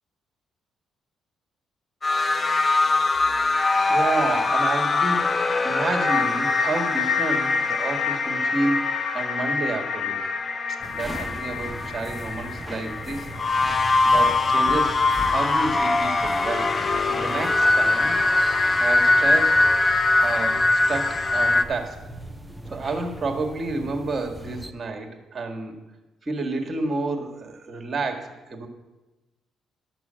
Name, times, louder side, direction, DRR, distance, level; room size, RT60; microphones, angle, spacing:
sound 1, 2.0-21.7, left 3 dB, 35° left, 0.7 m, -22 dB
voice 1, 3.9-5.4 5.6-8.8 9.1-10.2 10.7-13.3 14.0-18.2 18.8-19.7 20.2-22.0 22.7-25.8 26.2-28.7, right 3 dB, 35° right, 4 dB, 1.8 m, -30 dB
sound 2, 10.8-24.7, right 1 dB, 5° right, 0.7 m, -39 dB
12.5 x 6.1 x 7.5 m, 1.1 s
cardioid pair, 90°, 0 cm